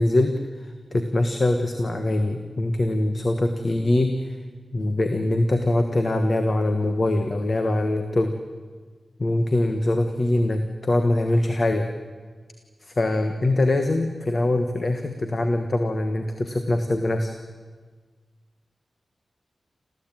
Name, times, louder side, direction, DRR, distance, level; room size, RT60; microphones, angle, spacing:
voice 1, 0.0-4.4 4.7-8.3 9.2-11.9 12.8-17.3, left 1 dB, 40° left, 6 dB, 1.5 m, -23 dB
29.0 x 14.5 x 9.1 m, 1.5 s
wide cardioid pair, 120°, 0 cm